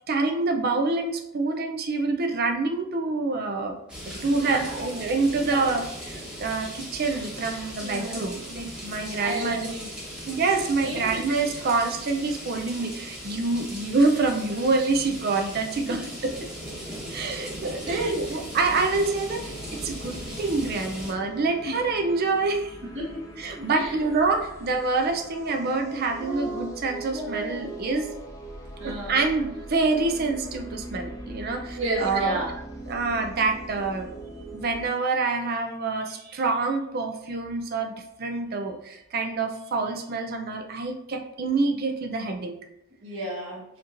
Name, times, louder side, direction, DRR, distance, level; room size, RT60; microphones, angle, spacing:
voice 1, 0.1-3.8 4.2-9.7 10.3-16.3 17.1-22.8 23.4-28.1 28.8-32.4 32.9-34.1 34.5-37.9 38.2-42.5, right 3 dB, 45° right, 4 dB, 0.5 m, -26 dB
sound 1, 3.9-21.1, equal, 5° right, 1.0 m, -38 dB
voice 2, 4.3-4.6 5.4-5.8 7.8-8.3 8.8-9.9 10.8-11.3 15.9-16.0 16.9-17.1 17.8-18.5 21.6-21.7 22.9-24.0 28.8-29.1 31.5-32.5 43.0-43.6, right 1 dB, 60° right, -5 dB, 1.3 m, -33 dB
sound 2, 19.2-34.9, right 1 dB, 15° left, 0.7 m, -41 dB
sound 3, 26.2-26.7 27.1-28.3 28.6-28.7 29.2-29.5 29.7-30.6, equal, 30° left, 1.2 m, -38 dB
7.2 x 2.9 x 2.5 m, 0.83 s
head